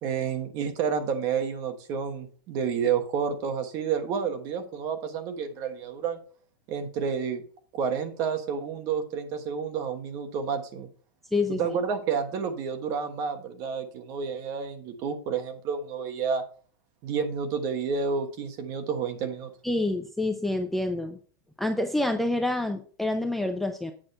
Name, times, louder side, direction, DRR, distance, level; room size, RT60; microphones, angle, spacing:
voice 1, 0.0-6.2 6.7-7.4 7.7-10.9 11.6-16.4 17.0-19.5, right 6 dB, 30° right, 7 dB, 1.2 m, -30 dB
voice 2, 19.6-21.2 21.6-23.9, left 2 dB, ahead, 4 dB, 0.4 m, -27 dB
8.9 x 6.3 x 4.2 m, 0.44 s
supercardioid pair, 170°, 11 cm